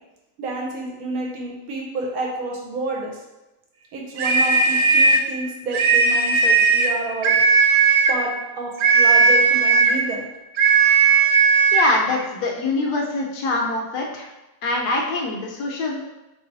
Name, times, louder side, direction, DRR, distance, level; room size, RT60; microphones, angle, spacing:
voice 1, 0.4-3.2 3.9-7.4 8.1-10.3, right 2 dB, 65° right, -1 dB, 1.1 m, -29 dB
sound 1, 4.2-5.3 5.7-7.0 7.2-8.2 8.8-10.0 10.6-11.9, right 4 dB, 85° right, 1.2 m, -16 dB
voice 2, 11.7-14.3 14.6-16.0, left 2 dB, 75° left, 0 dB, 1.3 m, -24 dB
3.3 x 3.1 x 3.9 m, 1.0 s
omnidirectional pair, 1.8 m